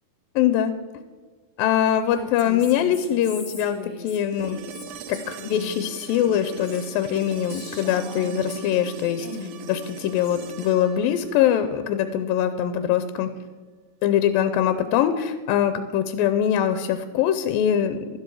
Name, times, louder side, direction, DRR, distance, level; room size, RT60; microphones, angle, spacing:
voice 1, 0.4-0.7 1.6-4.6 5.1-9.3 9.7-13.3 14.0-18.0, left 10 dB, 90° left, 10 dB, 2.4 m, -23 dB
Female speech woman speaking, 2.1-8.9 9.2-10.5, left 2 dB, 25° left, 2.5 m, -39 dB
sound 1, 4.3-12.4 14.5-14.6, right 5 dB, 80° right, 2.6 m, -41 dB
12.5 x 12.5 x 4.6 m, 1.4 s
omnidirectional pair, 4.1 m